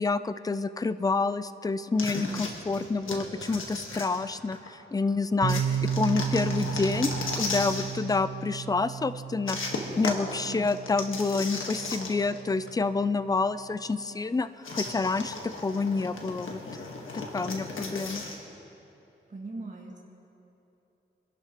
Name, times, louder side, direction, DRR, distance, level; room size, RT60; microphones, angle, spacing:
voice 1, 0.0-9.6 10.0-16.6 17.1-18.2, left 3 dB, 20° left, 14 dB, 0.4 m, -28 dB
sound 1, 2.0-4.7 5.5-8.0 9.5-12.4 12.7-12.8 14.6-18.4, left 3 dB, 85° left, 1.6 m, -36 dB
sound 2, 5.4-13.1, right 7 dB, 70° right, 0.8 m, -34 dB
voice 2, 10.4-10.8 19.3-20.0, right 3 dB, 40° right, -2 dB, 1.7 m, -39 dB
25.0 x 11.5 x 3.1 m, 2.9 s
cardioid pair, 75°, 20 cm